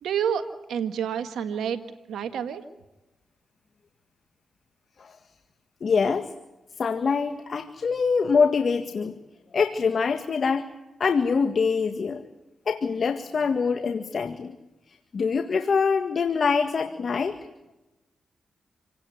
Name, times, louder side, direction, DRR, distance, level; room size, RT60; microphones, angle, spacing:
voice 1, 0.0-1.8 2.1-2.6, right 8 dB, 85° right, 9 dB, 1.6 m, -28 dB
voice 2, 5.8-6.3 6.8-9.1 9.5-10.7 11.0-12.2 12.7-14.6 15.1-17.4, left 5 dB, 60° left, 8 dB, 1.8 m, -24 dB
27.5 x 18.0 x 9.3 m, 1.0 s
cardioid pair, 50°, 0 cm